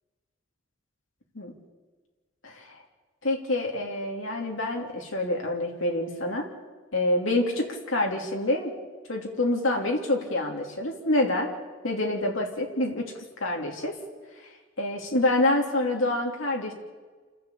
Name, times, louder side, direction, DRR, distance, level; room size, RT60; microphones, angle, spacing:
voice 1, 2.4-2.8 3.2-6.5 6.9-8.7 9.1-11.5 11.8-13.9 14.8-16.7, left 1 dB, 80° left, 1 dB, 3.2 m, -27 dB
28.5 x 12.5 x 8.5 m, 1.4 s
head